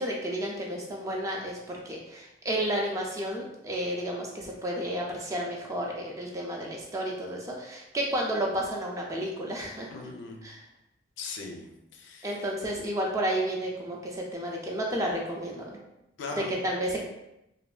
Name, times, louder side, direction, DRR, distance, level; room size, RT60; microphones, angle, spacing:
voice 1, 0.0-9.9 10.4-10.6 12.2-15.8 16.4-17.0, right 1 dB, 15° right, -1 dB, 0.3 m, -31 dB
voice 2, 9.9-10.5 11.2-12.4 16.2-16.6, left 3 dB, 65° left, 2 dB, 0.4 m, -39 dB
3.2 x 2.1 x 2.3 m, 0.88 s
head